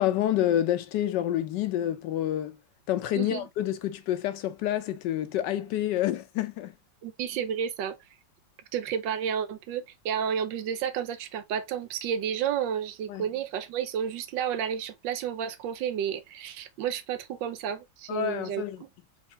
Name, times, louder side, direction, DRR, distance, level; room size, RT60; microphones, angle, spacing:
voice 1, 0.0-2.6 2.9-6.7 13.1-13.2 18.1-18.8, left 12 dB, 75° left, 1.3 m, -28 dB
voice 2, 3.1-3.5 7.0-8.0 8.7-18.6, right 8 dB, 90° right, 1.4 m, -31 dB
4.5 x 3.4 x 2.7 m
omnidirectional pair, 1.9 m